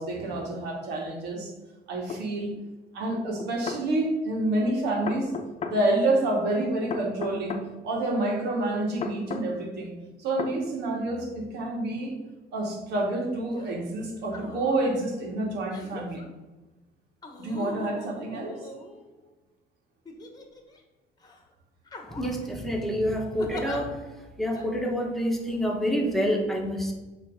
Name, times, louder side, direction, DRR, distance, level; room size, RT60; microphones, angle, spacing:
voice 1, 0.0-1.5 1.9-2.5 2.9-5.3 5.6-7.6 7.8-9.9 10.2-12.1 12.5-16.2 17.4-18.7, right 2 dB, 80° right, 1 dB, 1.8 m, -28 dB
sound 1, 2.1-2.2 3.4-3.8 5.1-5.8 6.9-7.7 9.0-9.5 10.4-10.6, left 5 dB, 40° left, 0.8 m, -33 dB
sound 2, 13.5-13.8 14.2-14.9 15.7-16.2 17.2-19.3 20.1-20.8 21.2-21.4 21.9-22.5 23.4-23.8 24.6-24.7, left 2 dB, 25° left, 1.2 m, -41 dB
voice 2, 22.2-23.9 24.4-26.9, equal, ahead, 0 dB, 1.3 m, -27 dB
7.4 x 3.3 x 5.2 m, 1.1 s
cardioid pair, 110°, 17 cm